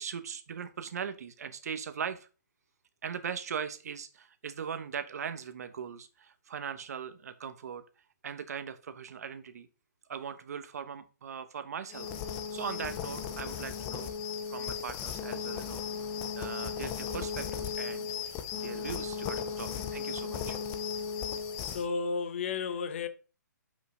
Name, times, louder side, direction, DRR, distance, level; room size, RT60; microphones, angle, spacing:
voice 1, 0.0-2.3 3.0-7.8 8.2-9.7 10.1-14.1 14.5-15.8 16.3-20.6, right 7 dB, 55° right, 1.1 m, -40 dB
sound 1, 11.9-21.9, left 7 dB, 15° left, 0.5 m, -36 dB
voice 2, 21.6-23.1, left 5 dB, 40° left, 0.8 m, -33 dB
5.8 x 5.4 x 4.9 m
hypercardioid pair, 170°, 10 cm